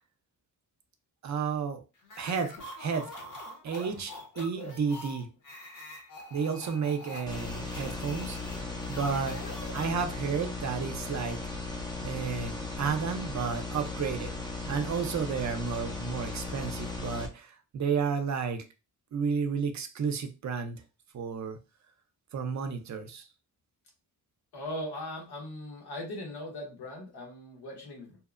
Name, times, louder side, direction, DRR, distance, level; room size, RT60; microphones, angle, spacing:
voice 1, 1.2-1.8 2.2-3.2 3.6-5.3 6.3-11.4 12.0-14.3 14.7-18.6 19.1-20.8 21.1-21.6 22.3-23.3, right 6 dB, 45° right, 7 dB, 0.5 m, -32 dB
sound 1, 2.0-10.3, left 2 dB, 50° left, 0.8 m, -45 dB
sound 2, 7.3-17.3, left 3 dB, 10° left, 0.4 m, -37 dB
voice 2, 24.5-28.2, left 1 dB, 75° left, 0 dB, 1.1 m, -39 dB
2.8 x 2.0 x 2.4 m, 0.30 s
wide cardioid pair, 130°, 39 cm